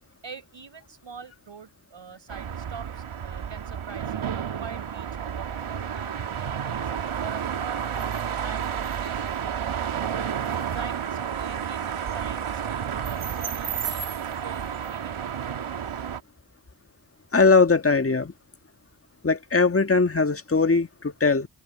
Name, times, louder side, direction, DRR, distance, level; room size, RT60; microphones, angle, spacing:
voice 1, 0.2-6.9 7.2-8.1 8.4-10.0 10.7-15.6, right 5 dB, 60° right, 6.0 m, -44 dB
sound 1, 2.3-16.2, right 8 dB, 80° right, 2.4 m, -31 dB
voice 2, 17.3-18.3 19.2-21.5, left 4 dB, 25° left, 1.8 m, -20 dB
open air
supercardioid pair, 40°, 49 cm